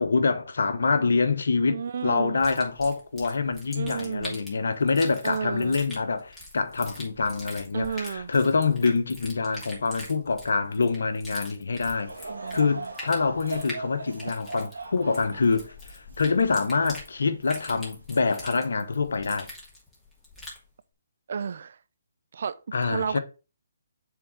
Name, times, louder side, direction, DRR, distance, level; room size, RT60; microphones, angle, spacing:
voice 1, 0.0-12.1 12.5-19.5 22.7-23.2, left 4 dB, 70° left, 1.0 m, -26 dB
voice 2, 1.7-2.4 3.7-4.4 5.2-5.8 7.7-8.3 12.3-12.9 21.3-21.8 22.3-23.2, right 6 dB, 60° right, 0.5 m, -32 dB
sound 1, 2.4-20.6, left 1 dB, 5° left, 2.7 m, -43 dB
Laughter / Crowd, 12.0-17.4 18.0-18.1 18.9-19.1, right 3 dB, 85° right, 1.8 m, -40 dB
6.9 x 3.7 x 4.8 m
figure-of-eight pair, 140°, 0 cm